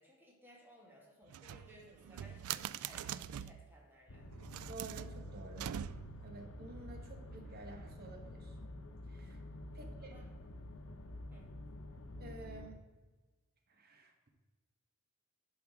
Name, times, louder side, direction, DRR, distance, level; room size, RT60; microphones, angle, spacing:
voice 1, 0.0-4.3 9.7-10.3 11.3-11.5, equal, 10° right, -2 dB, 2.1 m, -60 dB
sound 1, 1.3-3.7 4.3-6.3, right 10 dB, 90° right, 0.3 m, -43 dB
sound 2, 4.1-12.7, left 1 dB, 85° left, 0.8 m, -49 dB
voice 2, 4.7-5.7 6.2-8.5 9.1-9.4 9.7-10.1 12.2-12.8 13.7-14.3, right 3 dB, 50° right, 3 dB, 1.2 m, -51 dB
11.0 x 4.7 x 4.8 m, 1.3 s
head